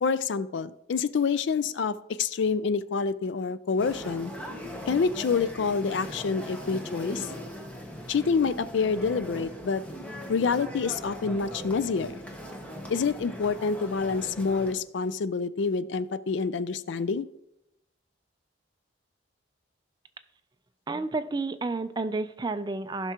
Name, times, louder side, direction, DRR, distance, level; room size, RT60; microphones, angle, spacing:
voice 1, 0.0-4.3 4.9-7.3 8.1-9.8 10.3-12.2 12.9-17.3, left 5 dB, 65° left, 15 dB, 0.4 m, -27 dB
sound 1, 3.8-14.7, equal, 5° left, 0.8 m, -40 dB
voice 2, 20.9-23.1, right 3 dB, 20° right, 11 dB, 0.4 m, -31 dB
15.5 x 6.0 x 2.9 m, 0.84 s
head